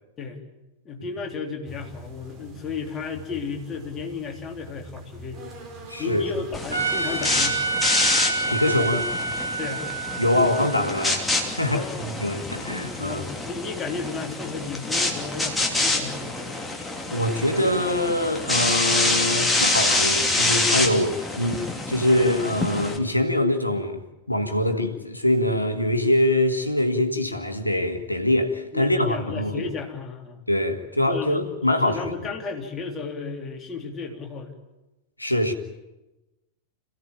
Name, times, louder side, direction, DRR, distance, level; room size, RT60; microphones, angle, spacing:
voice 1, 0.9-5.5 6.0-7.6 9.6-9.9 11.7-12.4 13.0-16.5 28.7-30.4 31.0-31.5 31.8-34.5, left 5 dB, 25° left, 3.6 m, -33 dB
sound 1, 1.7-7.8, right 1 dB, 30° right, 4.8 m, -43 dB
voice 2, 5.9-6.3 8.5-9.1 10.2-13.3 17.1-24.0 24.3-29.7 30.5-32.3 35.2-35.5, left 1 dB, 85° left, 1.8 m, -24 dB
sound 2, 6.5-23.0, left 2 dB, 10° left, 3.0 m, -26 dB
Trumpet, 6.7-11.9, right 3 dB, 80° right, 2.0 m, -29 dB
27.0 x 16.0 x 9.0 m
figure-of-eight pair, 90°, 0 cm